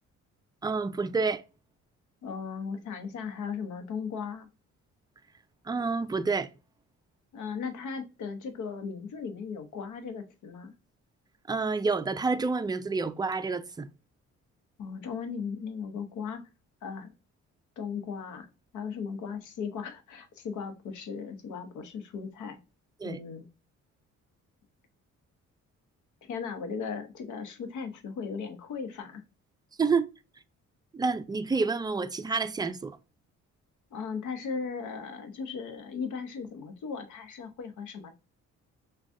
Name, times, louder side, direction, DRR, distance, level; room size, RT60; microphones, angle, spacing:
voice 1, 0.6-1.4 5.7-6.5 11.5-13.9 23.0-23.2 29.8-30.1 30.9-33.0, right 4 dB, 15° right, 0.3 m, -28 dB
voice 2, 2.2-4.5 7.3-10.7 14.8-16.4 16.8-17.1 17.8-18.5 18.7-22.6 23.0-23.5 26.2-29.2 33.9-38.1, left 6 dB, 75° left, 0.8 m, -37 dB
6.0 x 2.3 x 2.6 m
cardioid pair, 90°, 30 cm